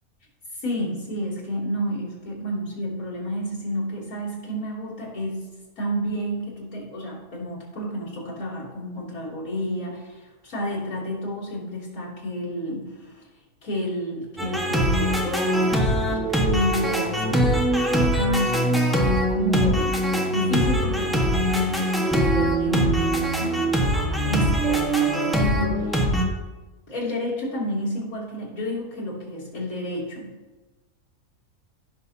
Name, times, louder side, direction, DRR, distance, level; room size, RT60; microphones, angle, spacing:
voice 1, 0.6-5.4 5.8-13.3 13.6-26.2 26.9-30.3, equal, 80° left, -6 dB, 3.4 m, -30 dB
sound 1, 14.4-26.2, right 1 dB, ahead, 1.2 m, -22 dB
16.0 x 6.5 x 2.8 m, 1.2 s
omnidirectional pair, 1.5 m